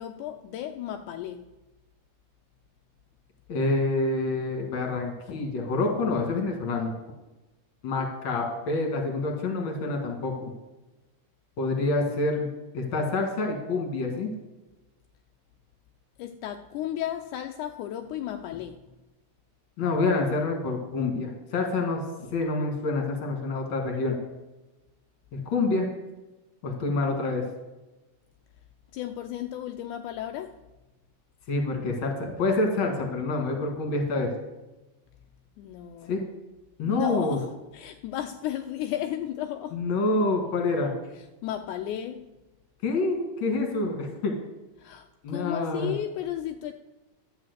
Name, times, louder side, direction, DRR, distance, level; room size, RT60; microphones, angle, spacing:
voice 1, 0.0-1.5 16.2-18.8 28.9-30.5 35.6-36.2 36.8-37.5 37.7-39.8 41.4-42.3 44.8-46.7, left 11 dB, 85° left, 6 dB, 1.7 m, -34 dB
voice 2, 3.5-6.9 7.8-10.5 11.6-12.5 12.7-14.3 19.8-22.0 22.3-24.2 25.3-25.9 26.6-27.4 31.5-34.3 36.1-36.2 36.8-37.4 39.7-40.9 42.8-44.3 45.2-45.9, left 3 dB, 45° left, 2 dB, 2.1 m, -27 dB
11.5 x 5.0 x 7.9 m, 1.1 s
omnidirectional pair, 4.0 m